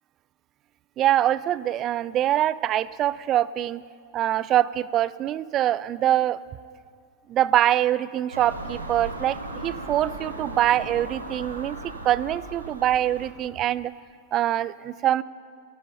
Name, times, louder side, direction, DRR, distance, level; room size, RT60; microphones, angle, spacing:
voice 1, 1.0-3.8 4.1-6.4 7.3-11.8 12.0-13.9 14.3-15.2, right 12 dB, 30° right, 19 dB, 0.3 m, -24 dB
Car passing by / Engine, 8.3-13.3, right 2 dB, 85° right, 1.6 m, -37 dB
13.0 x 12.0 x 5.6 m, 2.2 s
figure-of-eight pair, 90°, 0 cm